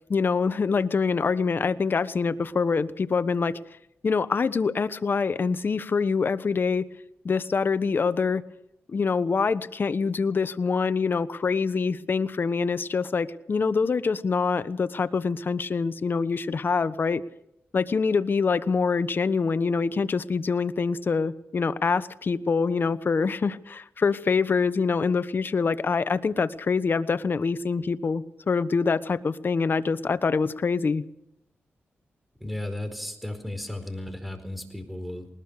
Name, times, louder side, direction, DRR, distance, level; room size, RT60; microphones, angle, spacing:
voice 1, 0.1-3.6 4.0-6.9 7.2-8.4 8.9-17.2 17.7-31.0, left 5 dB, 50° left, 14 dB, 1.0 m, -25 dB
voice 2, 32.4-35.3, left 1 dB, ahead, 9 dB, 4.5 m, -34 dB
20.0 x 20.0 x 6.6 m, 0.80 s
cardioid pair, 65°, 4 cm